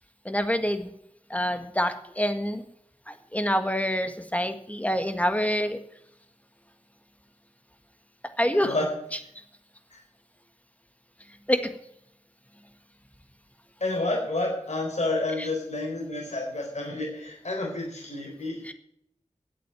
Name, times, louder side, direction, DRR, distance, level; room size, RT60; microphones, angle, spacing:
voice 1, 0.2-0.9 1.3-2.6 3.1-5.8 8.4-8.7 11.5-11.6 15.4-15.5 18.7-18.8, equal, 10° left, 8 dB, 1.7 m, -26 dB
voice 2, 13.8-18.6, left 2 dB, 70° left, 0 dB, 4.1 m, -29 dB
11.0 x 8.5 x 8.9 m, 0.72 s
wide cardioid pair, 65°, 12 cm